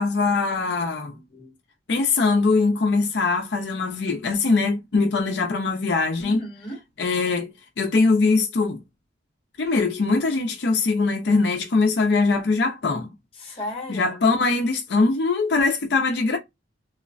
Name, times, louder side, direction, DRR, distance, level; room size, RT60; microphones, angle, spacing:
voice 1, 0.0-1.1 1.9-6.4 7.0-8.8 9.6-13.1 13.9-16.4, left 3 dB, 65° left, 0.5 m, -22 dB
voice 2, 1.1-1.5 6.2-6.8 13.4-14.2, left 1 dB, 30° left, 0.9 m, -35 dB
3.1 x 2.0 x 2.5 m
head